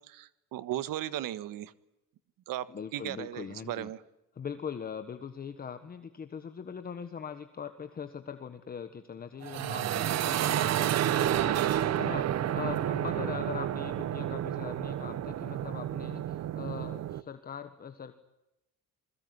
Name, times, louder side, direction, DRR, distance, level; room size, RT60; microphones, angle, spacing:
voice 1, 0.1-1.7 2.5-2.7 2.9-4.0, right 13 dB, 75° right, 15 dB, 1.6 m, -36 dB
voice 2, 2.7-3.9 4.3-18.1, left 7 dB, 25° left, 9 dB, 1.4 m, -41 dB
sound 1, 9.4-17.2, right 11 dB, 50° right, 1.0 m, -30 dB
28.5 x 21.5 x 9.7 m, 0.92 s
cardioid pair, 170°, 33 cm